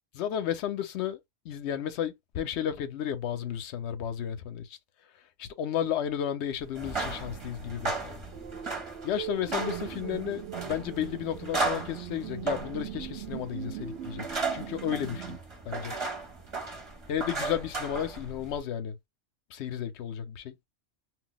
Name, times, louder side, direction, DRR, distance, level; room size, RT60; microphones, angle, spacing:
voice 1, 0.1-1.2 1.4-4.8 5.4-8.2 9.0-14.3 14.5-15.4 15.7-15.9 17.1-19.0 19.5-20.5, left 9 dB, 65° left, 0.8 m, -33 dB
sound 1, 6.7-18.6, right 3 dB, 25° right, 0.7 m, -36 dB
sound 2, 8.3-15.4, right 11 dB, 65° right, 0.8 m, -40 dB
2.3 x 2.2 x 3.8 m
omnidirectional pair, 1.4 m